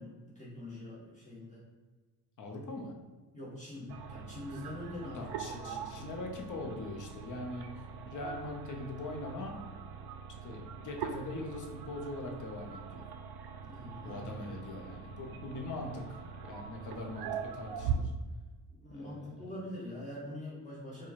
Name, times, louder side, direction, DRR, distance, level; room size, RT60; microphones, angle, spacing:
voice 1, 0.0-1.6 3.3-6.1 13.6-14.4 18.7-21.1, left 1 dB, 15° left, -8 dB, 1.3 m, -44 dB
voice 2, 2.4-3.0 5.1-9.6 10.4-13.1 14.0-18.1 18.9-19.5, left 2 dB, 45° left, 2 dB, 0.7 m, -42 dB
sound 1, 3.9-18.0, right 6 dB, 60° right, 0.5 m, -42 dB
4.4 x 2.3 x 2.9 m, 1.3 s
cardioid pair, 95°, 43 cm